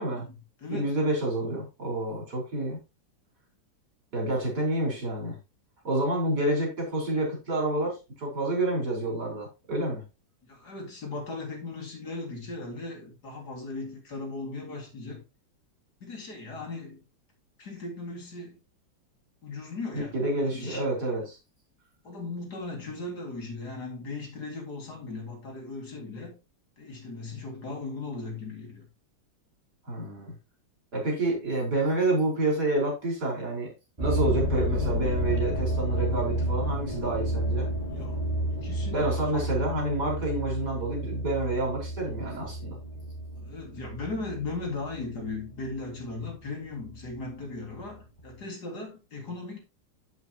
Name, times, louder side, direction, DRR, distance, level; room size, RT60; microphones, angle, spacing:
voice 1, 0.1-0.9 10.4-15.2 16.0-17.0 17.6-18.6 19.4-20.1 20.4-20.9 22.0-26.4 26.8-28.9 37.9-39.8 43.4-49.6, left 3 dB, 60° left, 3.1 m, -38 dB
voice 2, 0.7-2.8 4.1-5.4 5.8-10.0 19.9-21.4 29.9-30.4 30.9-33.7 34.0-38.0 38.9-42.8, right 2 dB, 60° right, 5.3 m, -28 dB
sound 1, 34.0-46.3 46.8-47.2 47.8-47.9 48.2-48.3, equal, 20° right, 3.7 m, -31 dB
8.1 x 8.1 x 2.9 m
omnidirectional pair, 2.0 m